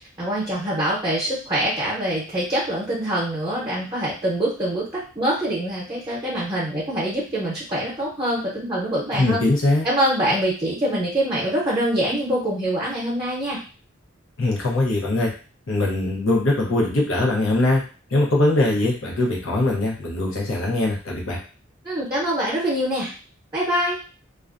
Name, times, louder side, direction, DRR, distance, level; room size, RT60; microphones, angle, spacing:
voice 1, 0.2-9.4 9.8-13.6 21.8-23.1 23.5-24.0, right 1 dB, 20° right, -6 dB, 0.7 m, -24 dB
voice 2, 9.2-9.9 14.4-15.3 15.7-17.8 18.1-21.4, left 2 dB, 85° left, -2 dB, 0.7 m, -21 dB
2.4 x 2.1 x 2.5 m, 0.36 s
head